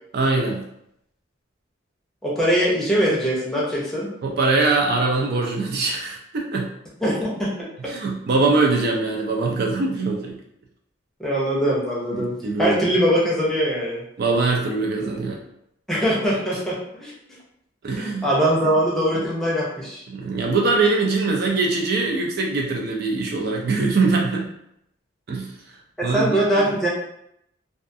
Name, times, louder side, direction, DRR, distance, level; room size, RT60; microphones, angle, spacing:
voice 1, 0.1-0.6 4.2-6.7 7.9-10.4 12.1-12.9 14.2-15.4 17.8-18.3 19.1-19.3 20.1-24.5 25.3-25.5 26.0-26.7, right 3 dB, 50° right, 0 dB, 0.4 m, -22 dB
voice 2, 2.2-4.1 7.0-7.5 11.2-12.3 12.6-14.0 15.9-17.1 18.0-20.0 26.1-26.9, equal, ahead, -6 dB, 0.6 m, -22 dB
2.4 x 2.3 x 2.5 m, 0.76 s
head